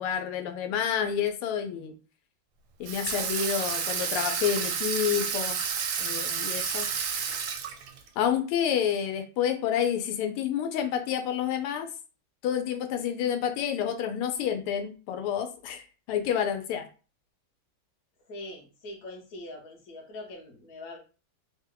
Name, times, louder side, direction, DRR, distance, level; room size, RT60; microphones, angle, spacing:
voice 1, 0.0-2.0 2.8-5.6 6.0-6.9 8.2-11.9 12.4-15.8 16.1-16.9, left 9 dB, 85° left, 6 dB, 1.5 m, -29 dB
Water tap faucet / Sink (filling or washing), 2.9-8.1, right 7 dB, 80° right, 1.5 m, -30 dB
voice 2, 18.3-21.0, left 1 dB, 55° left, 0 dB, 1.2 m, -42 dB
3.5 x 2.1 x 3.7 m, 0.35 s
omnidirectional pair, 2.4 m